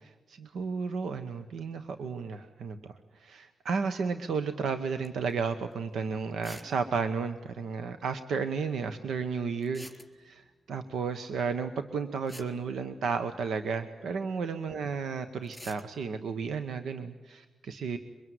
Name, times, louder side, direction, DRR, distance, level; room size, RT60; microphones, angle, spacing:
voice 1, 0.0-9.8 10.1-18.0, right 5 dB, 80° right, 9 dB, 1.1 m, -33 dB
sound 1, 5.0-5.3 5.7-5.8 6.4-6.8 7.0-7.1 7.3-7.4 9.6-10.5 11.9-12.0 12.3-13.5 15.4-15.9, equal, ahead, 3.7 m, -48 dB
24.0 x 21.5 x 9.6 m, 1.2 s
cardioid pair, 50°, 0 cm